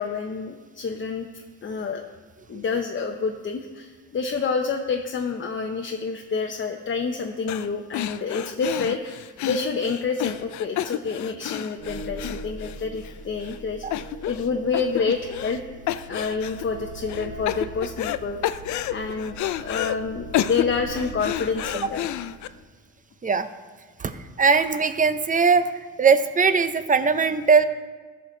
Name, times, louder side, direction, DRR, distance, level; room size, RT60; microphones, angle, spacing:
voice 1, 0.0-2.1 2.5-15.6 16.0-18.4 18.9-22.1, left 5 dB, 40° left, 3 dB, 0.8 m, -28 dB
sound 1, 7.5-7.7 7.9-13.1 13.4-13.6 13.9-14.5 14.7-15.6 15.9-16.6 17.1-18.2 18.4-20.0 20.3-22.5, left 13 dB, 70° left, 0.5 m, -30 dB
sound 2, 11.8-22.6, right 2 dB, 80° right, 2.1 m, -40 dB
voice 2, 24.4-25.7 26.0-27.6, right 5 dB, 25° right, 11 dB, 0.7 m, -20 dB
14.0 x 6.6 x 3.9 m, 1.4 s
cardioid pair, 90°, 30 cm